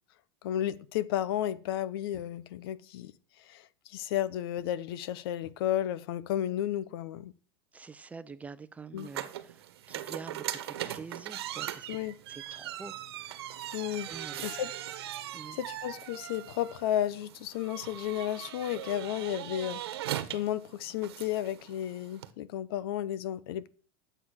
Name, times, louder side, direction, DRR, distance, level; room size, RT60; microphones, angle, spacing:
voice 1, 0.4-3.1 3.5-7.3 8.9-9.1 11.9-12.2 13.7-14.1 14.4-14.7 15.6-19.8 20.3-23.7, left 12 dB, 75° left, 0.9 m, -33 dB
voice 2, 7.7-11.9 12.3-13.5 14.0-14.5 15.3-15.6, right 4 dB, 10° right, 0.7 m, -46 dB
sound 1, 9.0-22.3, right 12 dB, 85° right, 1.3 m, -40 dB
12.0 x 7.8 x 6.5 m
supercardioid pair, 135°, 13 cm